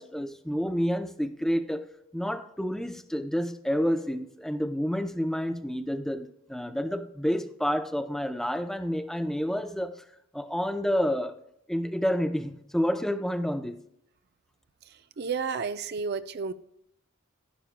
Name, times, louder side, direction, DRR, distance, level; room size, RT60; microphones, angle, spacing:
voice 1, 0.0-10.0 10.3-11.4 11.7-13.8, equal, ahead, 0.5 m, -29 dB
voice 2, 14.9-16.5, right 5 dB, 55° right, 0.5 m, -32 dB
11.5 x 11.5 x 2.2 m
head